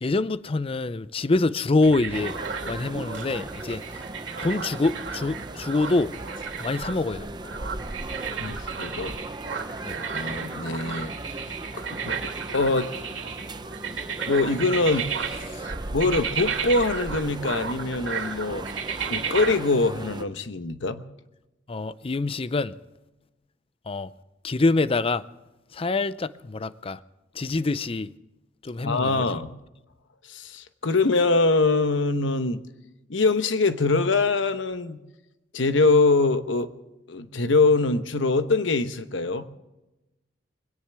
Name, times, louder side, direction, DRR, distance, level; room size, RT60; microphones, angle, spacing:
voice 1, 0.0-2.3 2.7-3.8 4.4-6.1 6.6-7.3 9.8-10.0 21.7-22.8 23.9-24.1 24.4-25.2 25.7-27.0 27.4-28.1 28.6-29.2, left 3 dB, 30° left, 0.5 m, -25 dB
sound 1, 1.8-19.6, right 6 dB, 80° right, 2.7 m, -34 dB
sound 2, 2.1-20.2, right 2 dB, 25° right, 0.7 m, -37 dB
voice 2, 8.4-9.1 10.1-11.4 11.9-12.2 12.5-12.9 14.3-15.1 15.9-18.7 19.1-21.0 28.8-29.5 30.3-32.6 33.1-35.0 35.5-36.7 37.1-39.5, left 3 dB, 80° left, 1.0 m, -23 dB
21.0 x 17.5 x 3.5 m
head